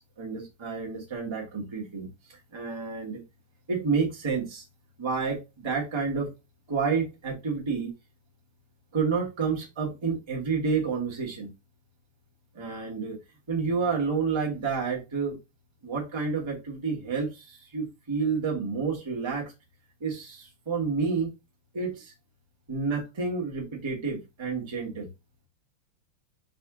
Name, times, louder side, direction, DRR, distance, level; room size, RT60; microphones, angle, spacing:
voice 1, 0.2-2.1 2.5-3.2 3.7-4.6 5.0-6.3 6.7-7.9 8.9-11.5 12.5-13.2 13.5-15.4 15.8-19.5 20.0-21.3 21.7-22.1 22.7-25.1, right 5 dB, 25° right, 0.6 m, -29 dB
4.1 x 2.8 x 3.6 m
omnidirectional pair, 2.3 m